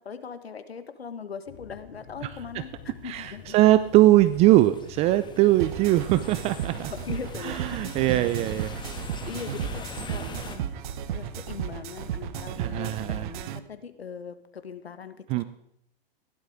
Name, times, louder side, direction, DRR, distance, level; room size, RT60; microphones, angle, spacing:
voice 1, 0.0-3.6 6.9-7.8 9.2-10.7 11.1-15.4, left 6 dB, 85° left, 11 dB, 1.6 m, -40 dB
sound 1, 1.5-13.1, left 7 dB, 60° left, 3.1 m, -47 dB
voice 2, 3.0-6.9 7.4-8.8 12.6-13.3 15.3-15.4, right 15 dB, 20° right, 14 dB, 0.4 m, -21 dB
sound 2, 3.3-10.6, left 5 dB, 15° left, 1.3 m, -43 dB
sound 3, 5.6-13.6, right 11 dB, 50° right, 1.0 m, -34 dB
16.0 x 11.5 x 5.0 m, 0.75 s
hypercardioid pair, 120°, 30 cm